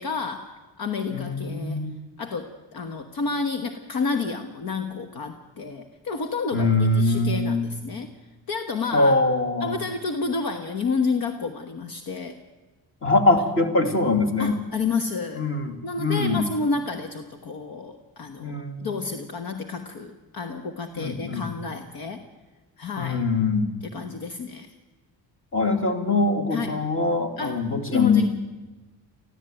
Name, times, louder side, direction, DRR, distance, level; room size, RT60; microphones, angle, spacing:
voice 1, 0.0-1.8 2.2-8.1 8.5-9.2 9.6-12.4 14.4-15.5 15.8-22.2 22.8-23.2 23.9-24.7 26.5-26.8 27.4-27.6 27.9-28.3, left 4 dB, 55° left, 7 dB, 1.4 m, -30 dB
voice 2, 1.1-2.0 6.5-7.7 8.9-9.8 13.0-14.5 15.3-16.4 18.4-18.9 21.0-21.4 23.0-23.7 25.5-28.3, left 2 dB, 30° left, 7 dB, 2.6 m, -23 dB
25.0 x 15.0 x 9.1 m, 1.2 s
cardioid pair, 155°, 41 cm